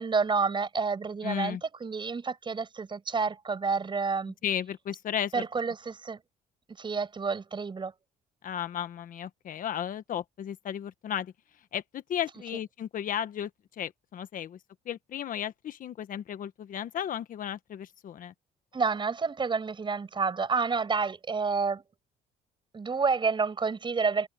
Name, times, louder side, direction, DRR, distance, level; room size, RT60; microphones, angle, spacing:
voice 1, 0.0-4.3 5.3-6.2 6.8-7.9 18.7-21.8 22.7-24.3, right 5 dB, 30° right, 6.1 m, -29 dB
voice 2, 1.2-1.6 4.4-5.4 8.4-11.3 11.7-13.5 13.8-14.6 14.8-18.3, left 10 dB, 55° left, 1.3 m, -34 dB
cardioid pair, 110°, 17 cm